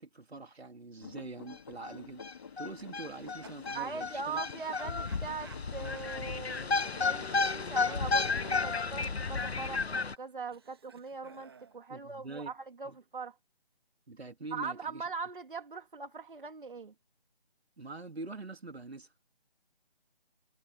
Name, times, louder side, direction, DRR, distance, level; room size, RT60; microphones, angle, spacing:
voice 1, 0.0-2.2 2.6-4.4 11.9-12.5 12.8-13.0 14.1-15.0 17.8-19.1, right 3 dB, 85° right, 3.2 m, -44 dB
sound 1, 1.0-9.1, left 7 dB, 20° left, 2.3 m, -49 dB
sound 2, 1.5-1.6 1.8-1.9 2.2-10.2, left 4 dB, 85° left, 1.3 m, -32 dB
sound 3, 3.0-3.8 4.7-7.6 7.8-11.8, right 6 dB, 25° right, 1.8 m, -57 dB
voice 2, 3.7-6.7 6.9-13.4 14.5-16.9, right 4 dB, 55° right, 2.0 m, -41 dB
figure-of-eight pair, 175°, 31 cm